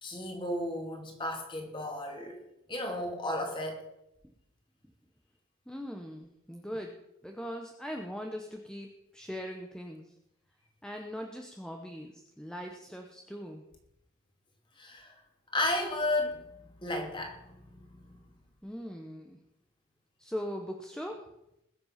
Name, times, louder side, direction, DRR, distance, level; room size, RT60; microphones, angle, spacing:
voice 1, 0.0-2.4 2.7-3.9 14.8-15.1 15.5-16.5 16.8-18.2, left 1 dB, 25° left, 2 dB, 2.7 m, -33 dB
voice 2, 5.7-6.9 7.2-10.1 10.8-13.6 18.6-19.4 20.2-21.2, equal, 5° left, 3 dB, 0.9 m, -40 dB
20.5 x 7.6 x 5.8 m, 0.85 s
head